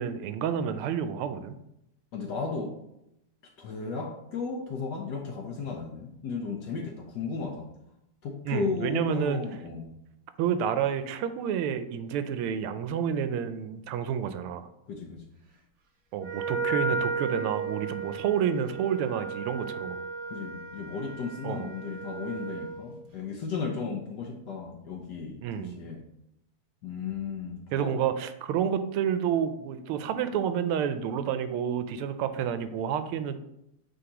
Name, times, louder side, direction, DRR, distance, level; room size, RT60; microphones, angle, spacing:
voice 1, 0.0-1.6 8.4-9.4 10.4-14.7 16.1-20.0 21.4-21.7 25.4-25.8 27.7-33.4, right 8 dB, 85° right, 10 dB, 1.5 m, -29 dB
voice 2, 2.1-2.7 3.6-7.7 8.2-9.9 14.9-15.2 20.3-26.0 26.8-27.9, left 4 dB, 65° left, 1 dB, 1.1 m, -35 dB
Wind instrument woodwind instrument, 16.2-22.9, right 4 dB, 60° right, 0.7 m, -34 dB
9.0 x 3.6 x 2.9 m, 0.81 s
omnidirectional pair, 2.4 m